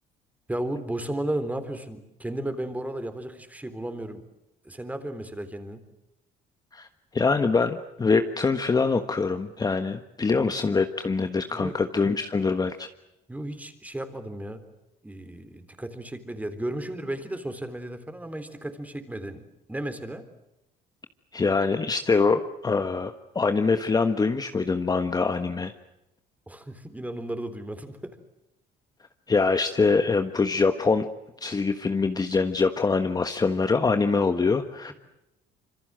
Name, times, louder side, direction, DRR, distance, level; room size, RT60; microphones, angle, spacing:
voice 1, 0.5-4.2 4.6-5.8 11.5-11.8 13.3-14.6 15.0-19.4 19.7-20.3 26.5-28.2, right 1 dB, 10° right, 9 dB, 3.7 m, -34 dB
voice 2, 7.1-12.9 21.3-25.7 29.3-31.1 31.4-34.9, left 4 dB, 20° left, 7 dB, 1.3 m, -24 dB
26.5 x 25.0 x 7.7 m, 0.90 s
cardioid pair, 110°, 17 cm